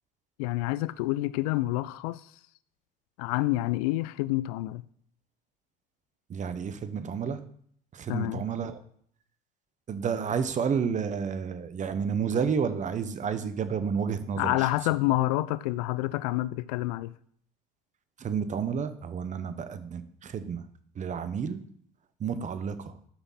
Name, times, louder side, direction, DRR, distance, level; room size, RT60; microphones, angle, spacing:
voice 1, 0.4-2.2 3.2-4.8 8.1-8.4 14.4-17.1, left 17 dB, 75° left, 0.4 m, -28 dB
voice 2, 6.3-7.4 7.9-8.8 9.9-14.7 18.2-20.6 20.9-21.6 22.2-23.0, right 6 dB, 40° right, 1.0 m, -30 dB
11.5 x 5.8 x 4.2 m
hypercardioid pair, 65°, 19 cm